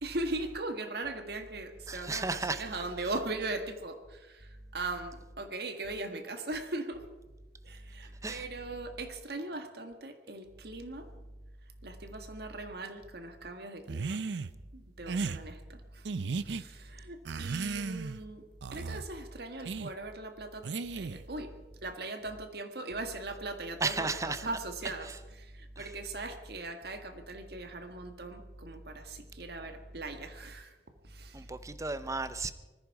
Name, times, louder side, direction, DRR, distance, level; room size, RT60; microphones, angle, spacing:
voice 1, 0.0-7.0 7.6-11.1 11.8-14.2 14.7-16.1 16.4-18.4 18.7-20.7 20.9-21.5 21.8-25.1 25.4-30.8 31.0-31.5, right 2 dB, 65° right, 7 dB, 1.7 m, -39 dB
voice 2, 1.9-2.6 8.2-8.4 23.8-24.5 25.0-25.2 25.8-25.9 31.3-32.5, right 3 dB, 20° right, 13 dB, 0.7 m, -34 dB
sound 1, 13.9-14.5 15.1-15.4 16.0-16.6 17.2-18.2 18.6-19.0 19.7-19.9 20.6-21.3, right 4 dB, 85° right, 0.5 m, -35 dB
20.0 x 14.0 x 4.7 m, 1.2 s
head